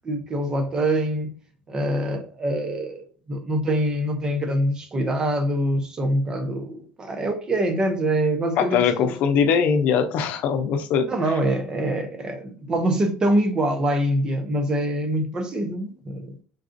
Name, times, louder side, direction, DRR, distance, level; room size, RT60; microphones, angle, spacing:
voice 1, 0.0-1.3 1.7-9.2 11.1-16.3, right 1 dB, 25° right, 0.8 m, -24 dB
voice 2, 8.6-11.1, left 7 dB, 65° left, 0.6 m, -21 dB
3.9 x 2.4 x 2.5 m
supercardioid pair, 105°, 3 cm